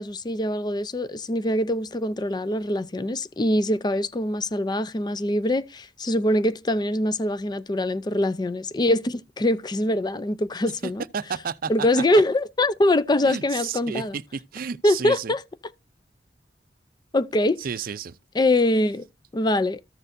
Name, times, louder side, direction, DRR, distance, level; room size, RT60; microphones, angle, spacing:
voice 1, 0.0-11.0 11.7-14.2 14.8-15.4 17.1-17.6 18.3-19.1 19.3-19.8, left 1 dB, 25° left, 0.5 m, -23 dB
voice 2, 10.8-11.7 13.2-15.3 17.6-18.1, right 6 dB, 55° right, 0.5 m, -32 dB
14.0 x 6.7 x 2.6 m
head